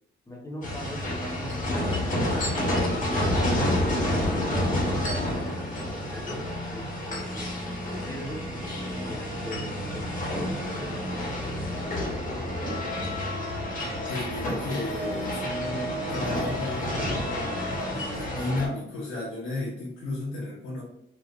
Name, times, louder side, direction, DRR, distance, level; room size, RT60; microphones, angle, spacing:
voice 1, 0.3-3.8 4.1-5.7 6.1-6.4 6.7-7.6 8.0-12.8, left 1 dB, 15° left, -2 dB, 0.9 m, -41 dB
sound 1, 0.6-18.7, left 1 dB, 40° left, 1.2 m, -29 dB
voice 2, 14.1-17.2 17.9-20.8, left 2 dB, 80° left, -6 dB, 1.1 m, -33 dB
3.2 x 2.3 x 2.4 m, 0.77 s
cardioid pair, 90°, 20 cm